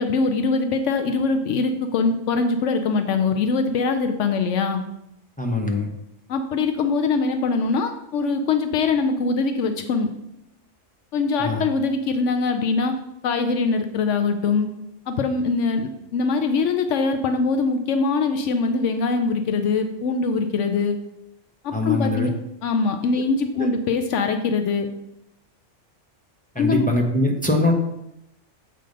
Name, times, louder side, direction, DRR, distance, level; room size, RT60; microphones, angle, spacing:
voice 1, 0.0-4.8 6.3-10.1 11.1-12.9 13.2-14.7 15.1-21.0 21.6-22.3 22.6-24.9 26.6-26.8, left 4 dB, 80° left, 7 dB, 0.9 m, -22 dB
voice 2, 5.4-5.9 11.4-11.6 21.7-22.3 23.6-23.7 26.5-27.7, left 2 dB, 10° left, 0 dB, 0.7 m, -22 dB
7.7 x 3.3 x 5.2 m, 0.82 s
omnidirectional pair, 1.3 m